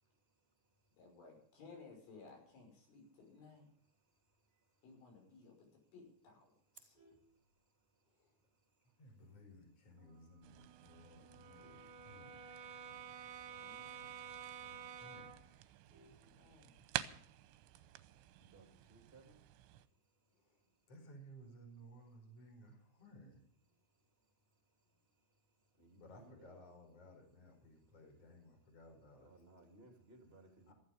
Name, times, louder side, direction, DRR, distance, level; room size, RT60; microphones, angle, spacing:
voice 1, 0.0-1.0 3.2-3.3 3.8-4.9 5.4-5.9 6.5-9.2 10.1-10.2 15.7-20.9 23.7-26.6 27.7-27.9 29.2-30.7, right 2 dB, 15° right, 4 dB, 2.3 m, -69 dB
voice 2, 1.0-3.7 4.8-6.9 13.6-14.1 15.9-16.8, left 4 dB, 80° left, 1 dB, 8.3 m, -59 dB
Vehicle horn car horn honking, 6.7-8.2 8.6-8.9 9.2-9.3 9.7-9.8 10.1-10.5 11.0-12.8 13.2-13.3 13.6-13.7 14.1-14.2 14.6-14.7 14.9-17.0 18.1-18.6, right 1 dB, 50° left, 5.4 m, -70 dB
voice 3, 9.0-12.4 14.6-15.4 20.3-20.6 20.9-23.4 26.0-29.3 30.7-30.8, equal, 30° left, 4 dB, 5.3 m, -59 dB
Brass instrument, 10.0-15.5, right 7 dB, 65° right, 3.0 m, -52 dB
sound 1, 10.4-19.9, right 14 dB, 80° right, 3.1 m, -50 dB
15.5 x 14.5 x 5.2 m, 0.63 s
omnidirectional pair, 5.6 m